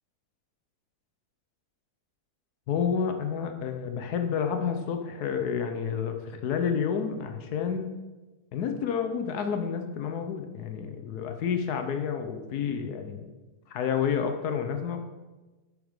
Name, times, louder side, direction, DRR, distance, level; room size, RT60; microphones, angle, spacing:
voice 1, 2.7-7.9 8.5-13.3 13.7-15.0, left 7 dB, 75° left, 6 dB, 1.3 m, -30 dB
8.3 x 5.1 x 6.4 m, 1.2 s
omnidirectional pair, 1.7 m